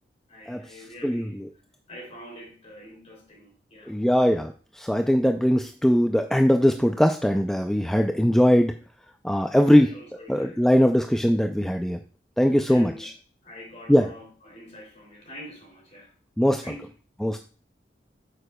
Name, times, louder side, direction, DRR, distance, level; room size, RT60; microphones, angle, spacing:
voice 1, 0.3-1.4 1.9-4.4 9.7-10.7 12.5-13.1 13.4-16.1 16.6-16.9, equal, 40° left, 0 dB, 2.9 m, -45 dB
voice 2, 1.0-1.5 3.9-8.7 9.2-9.9 10.3-12.0 12.4-13.1 13.9-14.1 16.4-16.6 17.2-17.4, equal, 5° left, 5 dB, 0.3 m, -21 dB
9.0 x 6.6 x 2.2 m, 0.40 s
head